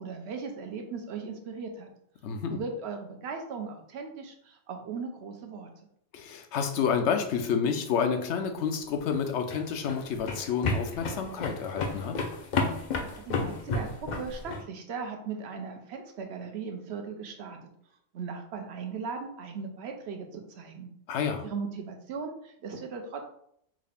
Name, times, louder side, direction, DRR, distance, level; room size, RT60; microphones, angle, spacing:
voice 1, 0.0-1.9 2.5-5.7 12.9-17.6 18.1-20.9 21.4-23.2, right 5 dB, 75° right, 4 dB, 0.9 m, -38 dB
voice 2, 2.2-2.6 6.1-12.2 21.1-21.5, left 6 dB, 85° left, 6 dB, 0.9 m, -29 dB
sound 1, 9.0-14.6, left 3 dB, 55° left, 0.5 m, -32 dB
3.7 x 2.4 x 3.3 m, 0.70 s
omnidirectional pair, 1.1 m